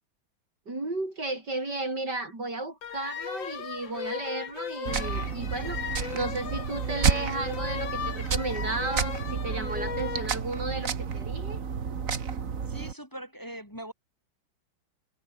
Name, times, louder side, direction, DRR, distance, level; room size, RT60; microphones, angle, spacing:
voice 1, 0.7-11.6, right 2 dB, 65° right, 7.0 m, -34 dB
sound 1, 2.8-10.3, left 8 dB, 85° left, 2.3 m, -37 dB
sound 2, 4.9-12.9, right 6 dB, 45° right, 1.9 m, -31 dB
voice 2, 12.7-13.9, equal, 10° left, 4.1 m, -41 dB
omnidirectional pair, 2.0 m